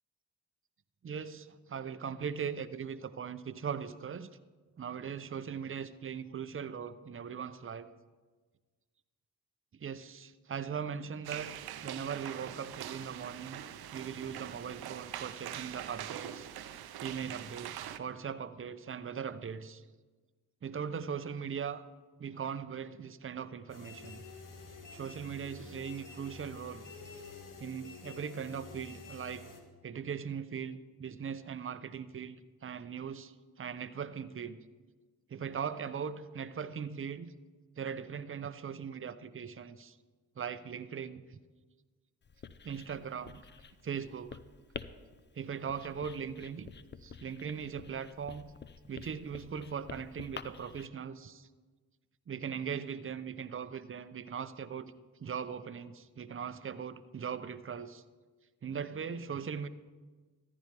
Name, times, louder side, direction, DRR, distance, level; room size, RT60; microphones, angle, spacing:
voice 1, 1.0-4.3 4.8-7.9 9.7-11.5 11.8-13.6 13.9-16.5 17.0-19.8 20.6-21.8 22.2-24.2 24.9-26.9 27.6-29.4 29.8-32.4 32.6-33.3 33.6-34.6 35.3-37.3 37.8-39.9 40.4-41.2 42.6-43.4 43.8-44.4 45.4-46.7 47.0-48.5 48.9-51.5 52.3-54.9 55.2-58.0 58.6-59.7, right 7 dB, 30° right, 13 dB, 0.6 m, -39 dB
sound 1, 11.2-18.0, right 11 dB, 70° right, 0.7 m, -43 dB
sound 2, 23.7-29.6, left 3 dB, 50° left, 1.7 m, -49 dB
Writing, 42.2-50.9, left 6 dB, 30° left, 0.6 m, -49 dB
14.5 x 9.7 x 3.4 m, 1.4 s
hypercardioid pair, 40°, 40 cm